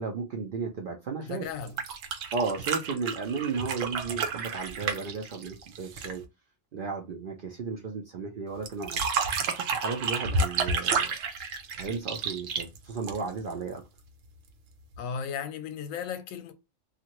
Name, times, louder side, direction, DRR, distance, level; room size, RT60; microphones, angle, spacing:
voice 1, 0.0-1.5 2.3-6.2 6.7-9.0 9.6-11.1 11.8-13.8, right 4 dB, 65° right, 0.5 m, -34 dB
voice 2, 1.2-1.7 15.0-16.5, left 7 dB, 85° left, 1.0 m, -35 dB
sound 1, 1.6-6.2 8.7-13.5 14.9-15.0, right 4 dB, 80° right, 1.0 m, -30 dB
2.6 x 2.5 x 2.9 m
omnidirectional pair, 1.4 m